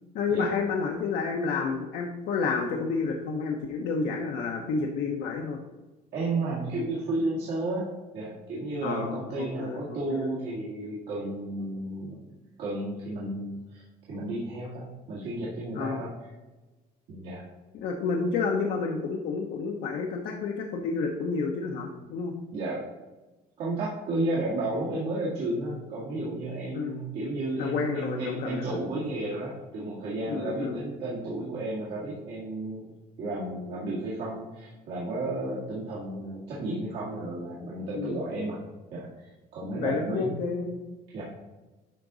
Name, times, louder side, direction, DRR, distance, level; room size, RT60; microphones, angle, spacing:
voice 1, 0.1-5.6 8.8-10.3 15.7-16.1 17.8-22.3 26.7-27.0 27.6-28.7 30.3-30.8 37.9-38.2 39.8-40.8, left 4 dB, 80° left, 1 dB, 0.9 m, -30 dB
voice 2, 6.1-7.9 8.1-12.3 12.6-16.3 17.1-17.4 22.5-22.8 23.6-32.9 33.2-38.6 38.9-40.4 41.1-41.2, right 2 dB, 85° right, -8 dB, 1.9 m, -32 dB
11.0 x 3.8 x 4.0 m, 1.2 s
cardioid pair, 110°, 17 cm